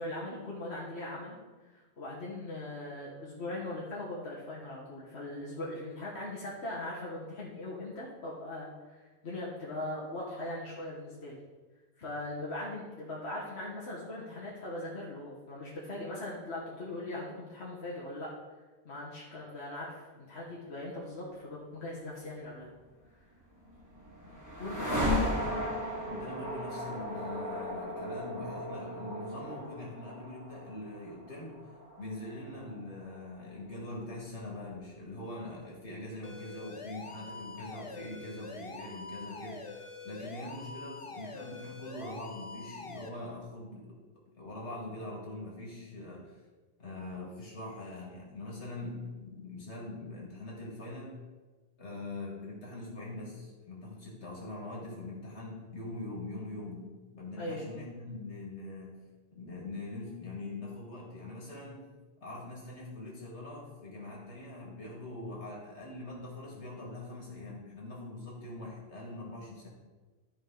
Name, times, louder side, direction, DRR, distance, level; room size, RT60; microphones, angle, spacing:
voice 1, 0.0-1.4 1.6-11.4 12.0-18.3 18.8-22.7 24.6-25.3 57.4-57.8, left 1 dB, 70° left, -6 dB, 1.7 m, -40 dB
sound 1, 23.4-33.5, equal, 15° right, 1.7 m, -36 dB
voice 2, 24.8-25.7 26.0-31.6 32.0-44.0 44.4-46.4 46.8-51.2 51.8-56.9 57.1-59.0 59.3-61.8 62.2-69.7, left 2 dB, 85° left, -3 dB, 2.6 m, -43 dB
sound 2, 36.2-43.1, left 3 dB, 35° left, 0.7 m, -45 dB
13.0 x 5.1 x 3.9 m, 1.3 s
omnidirectional pair, 1.1 m